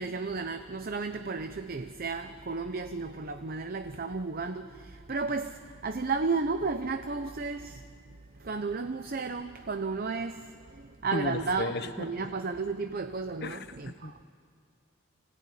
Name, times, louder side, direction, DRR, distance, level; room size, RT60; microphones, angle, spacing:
voice 1, 0.0-14.2, right 4 dB, 45° right, 0.7 m, -33 dB
voice 2, 11.1-12.1 13.4-13.6 13.9-14.2, left 2 dB, 55° left, 1.0 m, -34 dB
26.0 x 17.0 x 9.5 m
head